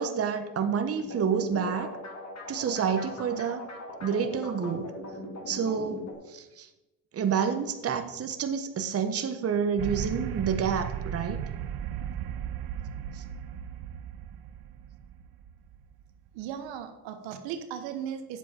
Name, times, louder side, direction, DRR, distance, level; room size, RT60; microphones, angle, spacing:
voice 1, 0.0-1.9 2.5-3.6 4.0-4.9 5.5-6.7 7.1-11.4 13.1-13.2, right 7 dB, 30° right, 8 dB, 1.0 m, -29 dB
sound 1, 1.0-6.1, left 1 dB, 35° left, 2.8 m, -40 dB
sound 2, 9.8-16.3, right 9 dB, 55° right, 0.8 m, -36 dB
voice 2, 16.3-18.4, right 9 dB, 70° right, 8 dB, 1.2 m, -37 dB
9.3 x 7.3 x 4.4 m, 1.0 s
supercardioid pair, 80°, 46 cm